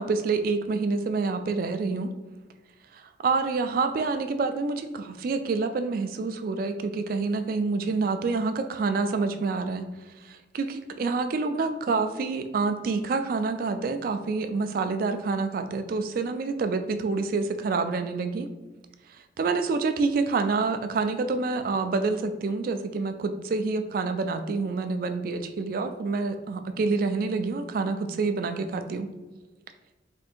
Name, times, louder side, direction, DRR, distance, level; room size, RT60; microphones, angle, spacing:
voice 1, 0.0-2.1 2.9-9.9 10.2-18.5 19.4-29.1, right 4 dB, 50° right, 8 dB, 0.3 m, -27 dB
3.5 x 2.5 x 4.2 m, 1.2 s
head